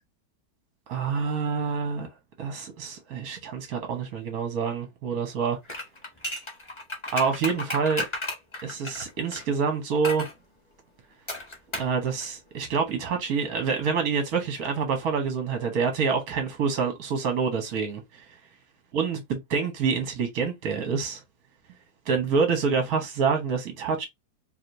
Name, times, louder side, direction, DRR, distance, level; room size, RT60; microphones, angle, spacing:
voice 1, 0.9-2.1 2.4-5.6 7.1-8.0 8.6-10.2 11.8-18.2 18.9-21.2 22.1-24.1, right 5 dB, 60° right, 1.4 m, -27 dB
sound 1, 5.6-9.4 10.0-10.3 11.3-12.0 12.2-12.3, left 1 dB, 15° left, 1.3 m, -33 dB
4.9 x 3.0 x 2.6 m
omnidirectional pair, 2.0 m